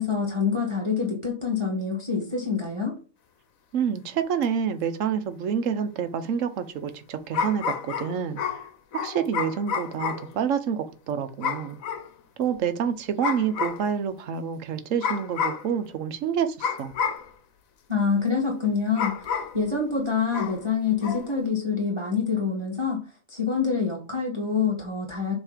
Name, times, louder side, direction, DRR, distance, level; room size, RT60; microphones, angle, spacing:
voice 1, 0.0-3.0 17.9-23.0 23.3-25.3, left 5 dB, 20° right, 1.5 m, -26 dB
voice 2, 3.7-8.4 9.0-11.8 12.4-16.9, right 7 dB, 70° right, 1.1 m, -28 dB
sound 1, 4.4-4.5 7.3-10.3 11.4-12.1 13.2-13.9 15.0-15.7 16.6-17.3 18.9-19.6 20.3-20.6 21.0-21.3, left 6 dB, 90° left, 1.2 m, -30 dB
7.3 x 3.2 x 5.0 m
omnidirectional pair, 1.4 m